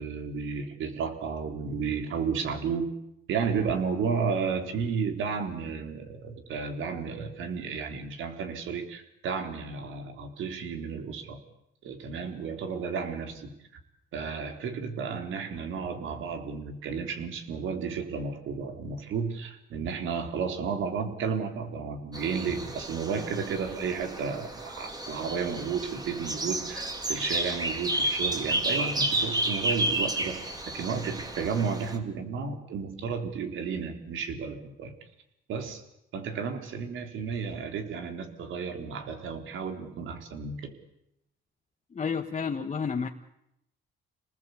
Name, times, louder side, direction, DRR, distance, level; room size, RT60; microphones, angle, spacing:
voice 1, 0.0-3.0 3.3-11.4 11.8-13.5 14.1-34.9 35.5-35.8 36.1-40.7, right 5 dB, 80° right, 6 dB, 3.9 m, -32 dB
sound 1, 22.1-32.0, right 1 dB, 20° right, 3.6 m, -31 dB
voice 2, 41.9-43.1, left 6 dB, 35° left, 2 dB, 1.6 m, -30 dB
28.0 x 19.5 x 8.5 m, 0.81 s
cardioid pair, 90°, 20 cm